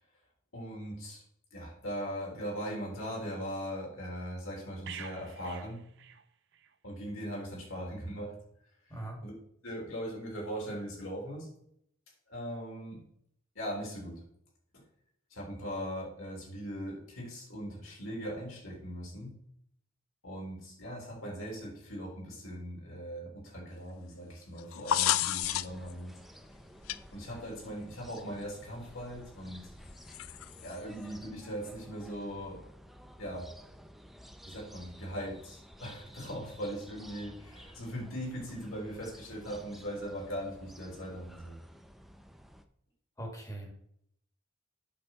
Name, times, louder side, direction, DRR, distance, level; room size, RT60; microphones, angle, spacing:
voice 1, 0.5-1.2 1.5-5.8 6.8-8.3 8.9-9.3 9.6-11.5 12.3-13.0 13.6-14.2 15.3-19.3 20.2-26.1 27.1-29.6 30.6-32.6 33.2-33.5 34.4-41.6, equal, 70° left, -2 dB, 3.7 m, -40 dB
sound 1, 4.9-6.8 7.1-7.3, right 8 dB, 60° right, 0.7 m, -47 dB
sound 2, 24.6-25.9 26.9-27.0 28.1-28.2 30.1-30.8, left 12 dB, 85° left, 0.4 m, -30 dB
sound 3, 25.4-42.6, equal, ahead, 0.5 m, -53 dB
voice 2, 43.2-43.7, right 1 dB, 15° left, 1 dB, 1.9 m, -40 dB
8.5 x 6.5 x 4.3 m, 0.70 s
head